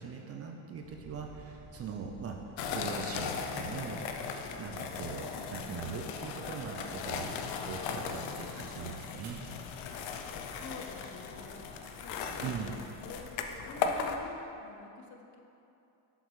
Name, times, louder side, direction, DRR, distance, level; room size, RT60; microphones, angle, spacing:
voice 1, 0.0-2.4 2.7-4.1 4.6-7.3 7.7-9.4 12.4-12.7, right 6 dB, 35° right, 2 dB, 0.4 m, -41 dB
sound 1, 0.8-14.2, left 1 dB, 10° right, 0.9 m, -53 dB
sound 2, 2.6-14.2, left 6 dB, 80° left, 0.6 m, -38 dB
sound 3, 8.2-10.7 11.0-12.9, right 2 dB, 80° right, 1.2 m, -56 dB
voice 2, 10.5-15.4, left 4 dB, 40° left, 3 dB, 0.7 m, -49 dB
7.5 x 5.3 x 3.1 m, 2.7 s
cardioid pair, 125°, 45 cm